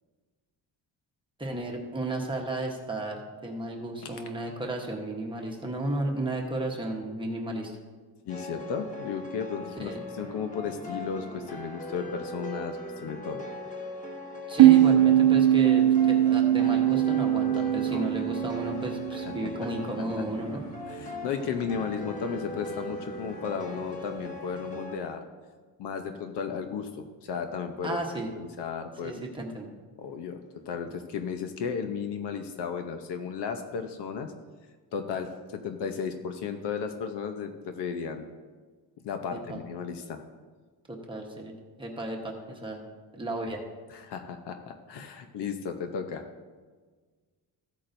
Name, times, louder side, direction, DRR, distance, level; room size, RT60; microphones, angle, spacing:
voice 1, 1.4-7.7 9.8-10.0 14.5-20.6 27.8-28.3 29.0-29.7 39.3-39.6 40.9-41.5 41.8-42.8 43.1-43.6, right 1 dB, 10° right, 0 dB, 1.1 m, -33 dB
voice 2, 8.3-13.4 17.9-18.1 19.2-19.3 19.6-19.7 20.9-25.2 25.8-28.0 28.3-29.2 30.0-30.4 30.7-34.3 34.9-38.2 39.0-40.2 43.9-46.3, left 6 dB, 75° left, 6 dB, 0.8 m, -34 dB
sound 1, 8.3-25.0, left 1 dB, 20° left, 1.1 m, -39 dB
sound 2, 14.6-19.9, right 12 dB, 70° right, 0.7 m, -21 dB
14.5 x 8.5 x 2.6 m, 1.4 s
cardioid pair, 175°, 41 cm